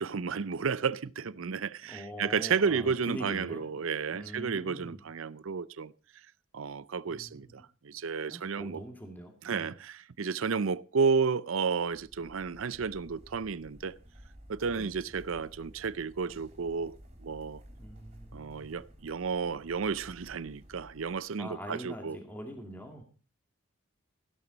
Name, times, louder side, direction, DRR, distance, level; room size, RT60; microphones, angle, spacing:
voice 1, 0.0-5.9 6.5-8.8 9.4-13.9 14.5-17.0 17.2-17.6 18.3-22.2, right 5 dB, 75° right, 0.6 m, -32 dB
voice 2, 1.8-3.6 4.1-5.0 7.1-7.5 7.9-8.0 8.3-9.7 14.7-14.9 17.7-18.7 21.4-23.0, equal, 10° left, 2.3 m, -43 dB
sound 1, 11.9-21.2, equal, 30° right, 3.5 m, -53 dB
15.0 x 12.0 x 4.0 m
head